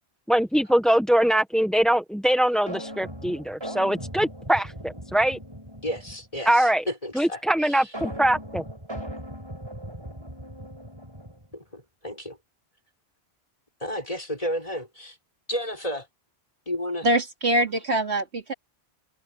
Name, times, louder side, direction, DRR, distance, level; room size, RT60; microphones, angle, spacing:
voice 1, 0.3-5.4 6.5-6.8 7.1-8.6, right 1 dB, ahead, 1.2 m, -22 dB
sound 1, 2.7-6.4 7.9-11.5, equal, 25° right, 4.9 m, -38 dB
voice 2, 5.8-7.9 11.5-12.4 13.8-15.2 15.5-16.1 16.7-17.1, equal, 35° left, 5.7 m, -32 dB
voice 3, 17.0-18.5, right 1 dB, 80° right, 2.8 m, -24 dB
omnidirectional pair, 1.1 m